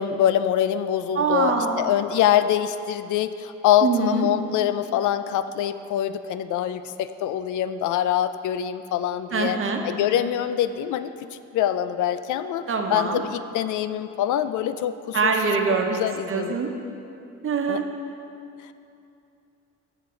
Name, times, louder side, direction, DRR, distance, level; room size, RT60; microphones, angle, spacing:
voice 1, 0.0-9.6 9.8-15.3 15.9-16.5 17.7-17.8, left 10 dB, 80° left, 12 dB, 0.5 m, -24 dB
voice 2, 1.1-1.8 3.8-4.3 9.3-9.8 12.7-13.2 15.1-16.7 17.4-17.9, right 4 dB, 45° right, 3 dB, 1.0 m, -24 dB
12.5 x 6.6 x 3.8 m, 2.7 s
cardioid pair, 90°, 30 cm